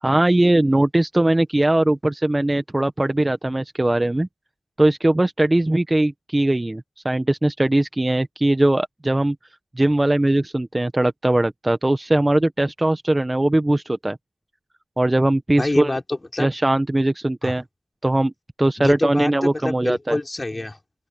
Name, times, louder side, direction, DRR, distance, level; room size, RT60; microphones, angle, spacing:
voice 1, 0.0-4.3 4.8-9.3 9.8-14.2 15.0-15.9 16.4-17.6 18.0-18.3 18.6-20.2, right 1 dB, 20° right, 1.3 m, -20 dB
voice 2, 15.6-16.5 17.4-17.5 18.8-20.8, left 2 dB, 30° left, 5.4 m, -26 dB
open air
cardioid pair, 50°, 0 cm